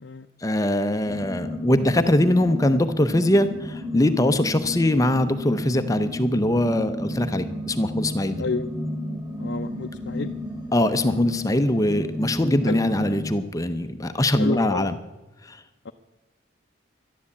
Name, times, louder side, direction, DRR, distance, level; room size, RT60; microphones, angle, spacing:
voice 1, 0.4-8.4 10.7-14.9 15.4-15.6, left 1 dB, 15° left, 10 dB, 0.6 m, -22 dB
sound 1, 1.1-13.3, left 1 dB, 15° right, 2.3 m, -32 dB
voice 2, 9.4-10.3 12.6-12.8 14.4-14.9 15.8-15.9, left 4 dB, 60° left, 5 dB, 0.6 m, -30 dB
12.0 x 11.5 x 8.4 m, 1.1 s
head